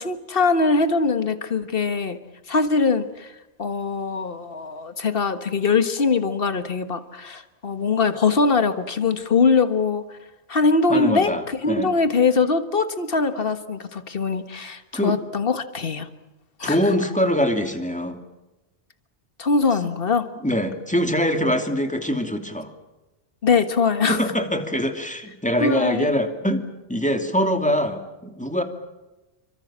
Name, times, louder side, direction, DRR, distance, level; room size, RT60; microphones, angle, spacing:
voice 1, 0.0-2.2 2.5-3.3 3.6-10.0 10.5-16.1 16.6-16.8 19.4-20.3 23.4-24.2 25.6-26.1, left 4 dB, 55° left, 10 dB, 1.8 m, -22 dB
voice 2, 10.9-11.9 14.9-15.2 16.6-18.2 20.4-22.7 24.1-28.6, equal, 5° left, 5 dB, 2.7 m, -23 dB
28.5 x 25.0 x 7.5 m, 1.0 s
omnidirectional pair, 1.2 m